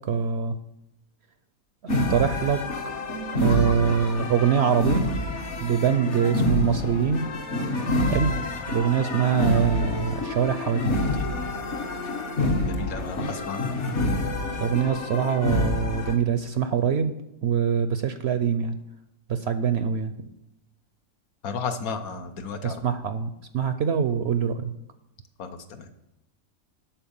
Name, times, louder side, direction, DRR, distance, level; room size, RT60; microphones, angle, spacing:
voice 1, 0.1-0.5 2.1-2.6 3.3-5.0 5.6-7.3 8.1-8.3 8.7-10.9 13.2-13.3 14.6-17.1 17.4-18.8 19.3-20.1 22.6-24.6, right 7 dB, 65° right, 10 dB, 0.7 m, -24 dB
sound 1, 1.9-16.1, left 1 dB, 55° left, 1.2 m, -27 dB
voice 2, 12.7-13.7 21.4-22.8 25.4-25.9, left 5 dB, 75° left, 7 dB, 1.3 m, -33 dB
11.5 x 4.4 x 7.0 m, 0.88 s
omnidirectional pair, 1.5 m